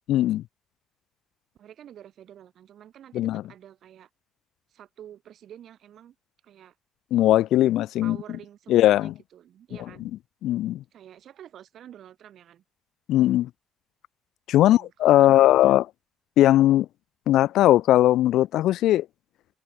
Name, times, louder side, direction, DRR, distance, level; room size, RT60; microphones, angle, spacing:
voice 1, 0.1-0.4 3.1-3.4 7.1-8.2 8.7-9.1 10.4-10.8 13.1-13.5 14.5-15.8 16.4-16.9 17.3-19.1, left 14 dB, 65° left, 0.5 m, -19 dB
voice 2, 1.5-4.1 4.7-6.1 6.4-6.7 8.0-10.1 10.9-12.6 14.6-15.7, right 10 dB, 50° right, 6.0 m, -48 dB
cardioid pair, 160°, 0 cm